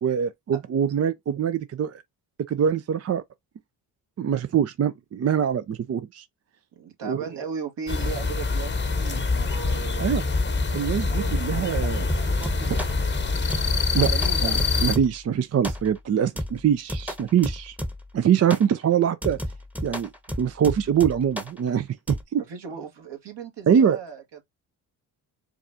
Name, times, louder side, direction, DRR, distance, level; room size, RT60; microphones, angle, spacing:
voice 1, 0.0-2.0 2.5-3.2 4.2-6.3 7.0-7.2 10.0-10.2 10.7-12.1 13.9-14.1 14.4-17.8 18.1-19.4 19.8-20.1 20.4-22.4 23.7-24.0, right 8 dB, 30° right, 0.5 m, -23 dB
voice 2, 6.8-10.1 11.1-13.7 14.0-14.7 20.3-20.4 22.4-24.4, right 6 dB, 60° right, 1.6 m, -37 dB
sound 1, 7.9-15.0, left 4 dB, 20° left, 0.9 m, -25 dB
sound 2, 12.1-13.0 13.5-15.3 15.6-16.1 16.4-18.2 18.5-18.7 19.2-21.6 22.1-22.2, equal, 5° right, 1.0 m, -33 dB
4.7 x 2.4 x 2.7 m
hypercardioid pair, 45°, 49 cm